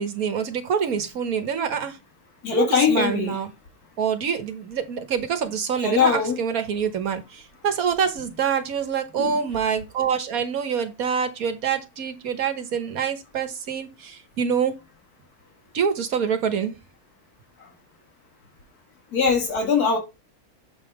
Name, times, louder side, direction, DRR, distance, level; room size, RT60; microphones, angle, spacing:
voice 1, 0.0-2.0 2.5-3.5 4.0-14.7 15.7-16.8, right 7 dB, 70° right, 1.5 m, -26 dB
voice 2, 2.4-3.4 5.8-6.4 9.2-9.4 19.1-20.0, left 6 dB, 90° left, 2.3 m, -21 dB
7.5 x 3.6 x 4.7 m
omnidirectional pair, 1.6 m